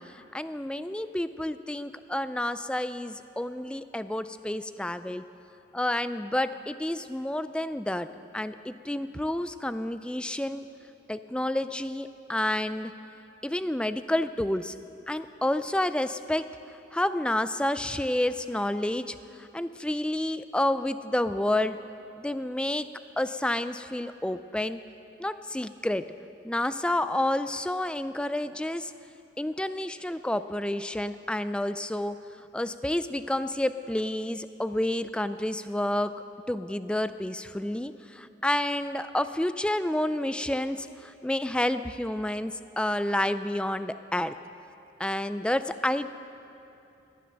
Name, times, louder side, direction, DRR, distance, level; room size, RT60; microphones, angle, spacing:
voice 1, 0.1-5.2 5.7-8.1 8.3-10.7 11.1-12.9 13.4-14.8 15.1-16.5 16.9-21.8 22.2-22.9 23.2-24.8 25.2-26.1 26.4-28.9 29.4-32.2 32.5-36.1 36.5-44.4 45.0-46.1, left 1 dB, 5° left, 12 dB, 0.3 m, -29 dB
17.0 x 10.0 x 6.5 m, 2.9 s
head